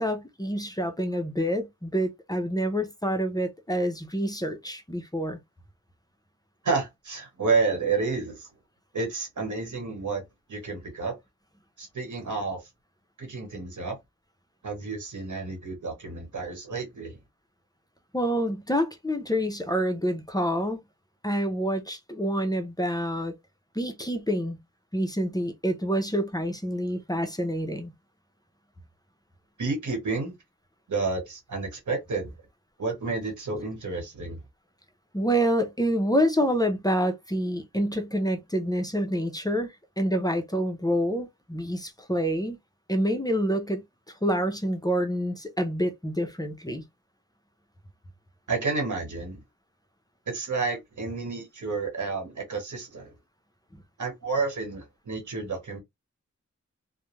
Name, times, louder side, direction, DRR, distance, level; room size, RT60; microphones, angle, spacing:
voice 1, 0.0-5.4 18.1-20.8 21.2-23.3 23.7-24.6 24.9-27.9 35.1-42.6 42.9-43.8 44.2-46.8 53.7-53.8, equal, 15° left, 0.5 m, -27 dB
voice 2, 6.6-8.5 8.9-11.1 11.8-12.6 13.2-14.0 14.6-17.2 29.6-30.3 30.9-32.3 32.8-34.4 48.5-49.4 50.3-53.1 54.0-55.8, right 4 dB, 90° right, 1.2 m, -30 dB
2.4 x 2.1 x 3.1 m
wide cardioid pair, 75°, 29 cm